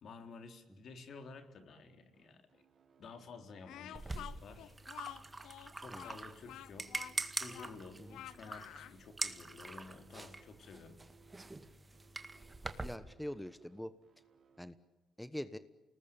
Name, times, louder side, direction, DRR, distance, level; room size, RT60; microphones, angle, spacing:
voice 1, 0.0-2.7 3.0-4.7 5.8-7.1 7.4-11.0, left 4 dB, 60° left, 7 dB, 3.6 m, -52 dB
sound 1, 2.1-14.6, right 6 dB, 50° right, 4.8 m, -68 dB
Speech, 3.6-9.0, left 12 dB, 85° left, 0.8 m, -50 dB
sound 2, 3.9-13.0, right 2 dB, 20° right, 1.9 m, -44 dB
voice 2, 12.8-13.9 14.6-14.8 15.2-15.6, equal, 5° left, 13 dB, 1.1 m, -43 dB
28.5 x 19.5 x 9.1 m, 1.2 s
cardioid pair, 90°, 0 cm